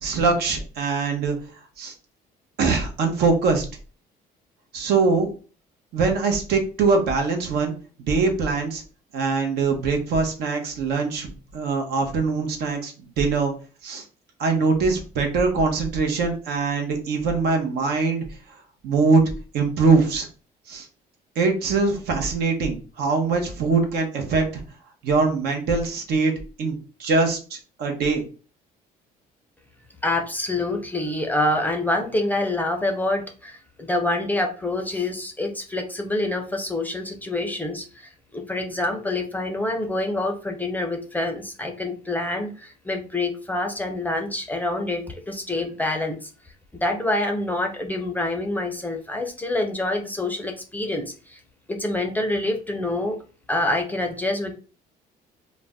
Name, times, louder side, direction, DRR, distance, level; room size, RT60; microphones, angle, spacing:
voice 1, 0.0-1.4 1.8-1.9 2.6-3.7 4.7-5.3 5.9-7.7 8.0-8.8 9.1-13.5 13.8-14.0 14.4-18.2 18.8-19.2 19.5-20.3 20.7-20.9 21.4-24.6 25.0-26.3 26.6-28.2, right 4 dB, 70° right, 4 dB, 0.8 m, -22 dB
voice 2, 30.0-46.3 46.8-51.4 51.7-53.2 53.5-54.6, left 2 dB, 10° left, 4 dB, 0.5 m, -26 dB
2.4 x 2.1 x 3.4 m, 0.36 s
cardioid pair, 110°, 17 cm